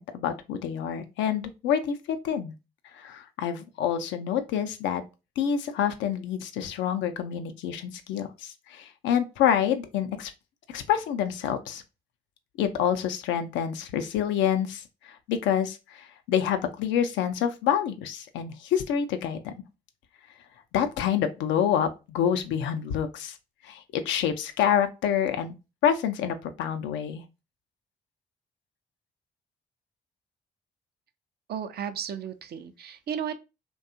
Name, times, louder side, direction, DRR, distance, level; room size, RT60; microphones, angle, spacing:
voice 1, 0.0-2.5 2.9-5.0 5.4-10.3 10.7-11.8 12.6-19.5 20.7-23.4 23.6-25.5 25.8-27.2, left 9 dB, 75° left, 0.4 m, -27 dB
voice 2, 31.5-33.3, right 8 dB, 55° right, 0.5 m, -34 dB
2.6 x 2.2 x 2.5 m
hypercardioid pair, 50°, 19 cm